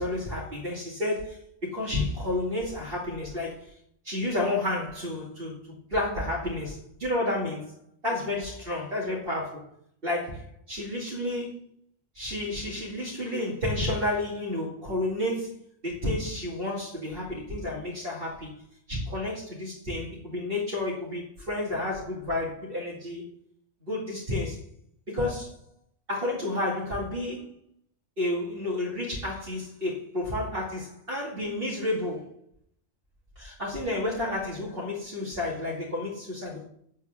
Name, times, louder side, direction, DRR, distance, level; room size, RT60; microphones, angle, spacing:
voice 1, 0.0-3.7 4.0-5.5 5.9-7.7 8.0-9.6 10.0-11.6 12.1-15.5 15.8-18.5 18.9-23.2 23.9-24.6 25.1-25.6 26.1-27.4 28.2-32.3 33.4-36.6, left 1 dB, 45° right, -5 dB, 2.3 m, -31 dB
12.0 x 4.6 x 8.2 m, 0.68 s
omnidirectional pair, 1.3 m